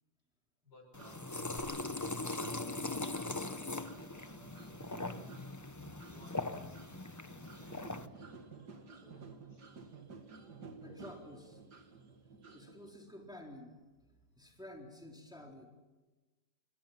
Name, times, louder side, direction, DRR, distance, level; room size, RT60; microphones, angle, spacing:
voice 1, 0.6-2.2 2.7-5.3 6.1-9.7, left 3 dB, 85° left, 3 dB, 6.7 m, -61 dB
sound 1, 0.9-8.1, left 2 dB, 20° left, 0.4 m, -40 dB
sound 2, 1.0-12.9, right 4 dB, 85° right, 2.6 m, -53 dB
sound 3, 1.6-3.1 3.8-3.9, equal, 45° right, 5.9 m, -59 dB
voice 2, 10.8-11.6 12.5-13.7 14.4-15.7, left 1 dB, ahead, 0 dB, 4.1 m, -51 dB
29.0 x 23.5 x 5.9 m, 1.2 s
omnidirectional pair, 1.7 m